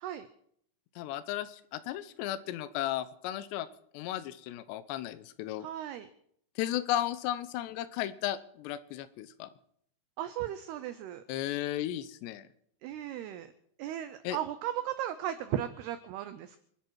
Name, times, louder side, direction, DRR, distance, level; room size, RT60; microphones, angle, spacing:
voice 1, 1.0-3.7 3.9-5.7 6.6-9.5 11.3-12.5 14.2-14.4, left 13 dB, 75° left, 13 dB, 2.7 m, -35 dB
voice 2, 5.6-6.1 10.2-11.2 12.8-13.5 13.8-16.6, right 11 dB, 90° right, 11 dB, 2.2 m, -36 dB
27.0 x 11.0 x 4.7 m, 0.68 s
omnidirectional pair, 5.5 m